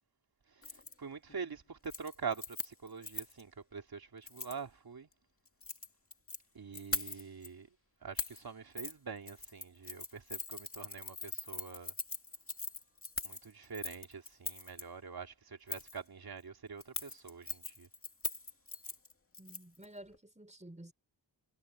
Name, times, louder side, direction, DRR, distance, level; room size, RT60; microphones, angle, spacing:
voice 1, 0.5-5.1 6.5-7.7 8.0-11.9 13.2-17.9, right 6 dB, 60° right, 3.3 m, -45 dB
Keys jangling, 0.6-0.9 1.3-1.6 1.8-3.4 4.3-4.6 5.5-6.4 6.7-7.5 8.2-8.4 8.8-8.9 9.3-14.8 15.7-16.0 16.8-19.9 20.1-20.2, left 3 dB, 30° left, 2.4 m, -41 dB
voice 2, 19.4-20.9, right 1 dB, 15° right, 4.8 m, -52 dB
cardioid pair, 65°, 42 cm